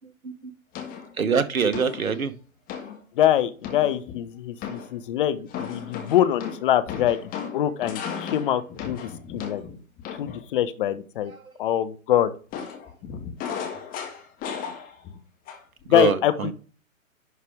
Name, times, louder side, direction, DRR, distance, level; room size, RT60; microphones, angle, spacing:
sound 1, 0.7-1.2 1.7-2.1 2.7-3.0 3.6-4.2 4.6-5.0 5.5-10.5 12.5-15.2 15.5-15.8, left 7 dB, 20° left, 1.6 m, -35 dB
voice 1, 1.2-2.3 15.9-16.5, right 6 dB, 80° right, 13 dB, 1.1 m, -24 dB
voice 2, 3.2-9.6 10.1-11.3 11.6-12.3 15.9-16.5, left 11 dB, 40° left, 13 dB, 0.9 m, -24 dB
11.0 x 4.7 x 3.5 m, 0.38 s
figure-of-eight pair, 125°, 41 cm